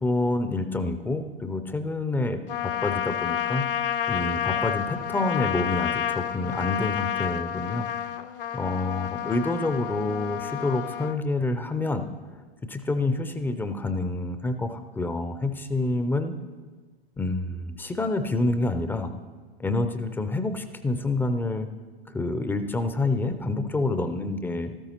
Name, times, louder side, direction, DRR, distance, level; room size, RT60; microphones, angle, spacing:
voice 1, 0.0-3.6 4.1-7.9 8.5-12.1 12.6-16.4 17.2-19.1 19.6-21.7 22.1-24.7, left 2 dB, 5° left, 9 dB, 0.4 m, -27 dB
Trumpet, 2.5-11.2, left 10 dB, 65° left, 0.7 m, -30 dB
13.5 x 13.5 x 2.9 m, 1.4 s
figure-of-eight pair, 95°, 29 cm